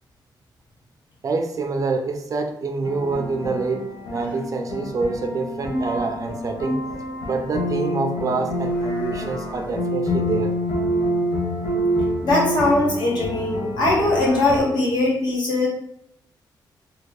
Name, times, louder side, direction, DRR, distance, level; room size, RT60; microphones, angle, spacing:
voice 1, 1.2-6.8 7.2-10.5, right 4 dB, 45° right, 5 dB, 0.4 m, -26 dB
sound 1, 2.8-14.6, equal, 85° left, 0.8 m, -27 dB
voice 2, 12.2-15.7, left 2 dB, 65° left, -4 dB, 1.4 m, -20 dB
3.2 x 2.3 x 3.4 m, 0.75 s
cardioid pair, 110°, 8 cm